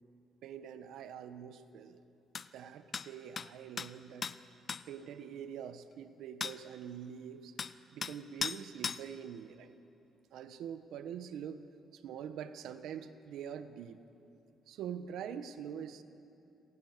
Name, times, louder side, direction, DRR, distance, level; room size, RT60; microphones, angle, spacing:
voice 1, 0.4-2.0 2.5-4.3 4.9-7.6 7.9-9.8 10.3-11.6 11.9-14.0 14.7-16.0, right 8 dB, 80° right, 11 dB, 1.2 m, -44 dB
sound 1, 2.3-2.5 2.9-3.1 3.4-3.5 3.8-3.9 4.2-4.4 4.7-4.8 6.4-6.6 7.6-7.7 8.0-8.1 8.4-8.6 8.8-9.0, left 6 dB, 45° left, 0.7 m, -36 dB
28.0 x 18.5 x 6.8 m, 2.9 s
cardioid pair, 90°, 0 cm